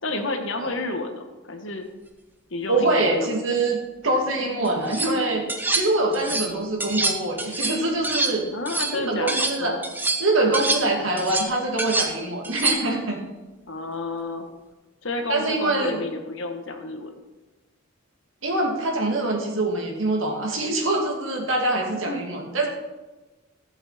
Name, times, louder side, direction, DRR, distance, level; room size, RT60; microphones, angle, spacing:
voice 1, 0.0-1.9 2.5-3.4 8.5-9.8 13.7-14.5 15.0-17.1 22.1-22.2, left 2 dB, 65° left, 5 dB, 1.3 m, -30 dB
voice 2, 2.7-3.8 4.0-5.4 5.7-8.5 8.9-9.7 10.2-13.2 15.3-16.0 18.4-22.7, right 2 dB, 70° right, 0 dB, 2.4 m, -24 dB
sound 1, 4.7-5.1 5.5-6.5 6.8-9.6 9.8-13.0, right 3 dB, 10° right, 0.7 m, -26 dB
14.5 x 7.2 x 4.2 m, 1.2 s
head